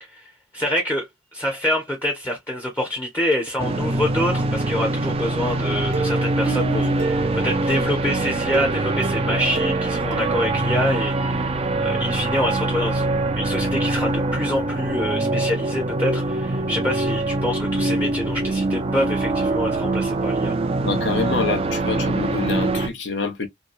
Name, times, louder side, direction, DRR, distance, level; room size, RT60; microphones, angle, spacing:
voice 1, 0.0-20.6, equal, 15° left, 0.8 m, -26 dB
sound 1, 3.6-22.9, right 2 dB, 30° right, 0.4 m, -23 dB
Plucked string instrument, 5.9-7.9 8.5-11.3 11.6-11.7 12.1-12.2, right 4 dB, 70° right, 0.8 m, -31 dB
voice 2, 20.8-23.5, left 4 dB, 70° left, 0.9 m, -26 dB
2.7 x 2.2 x 2.5 m
head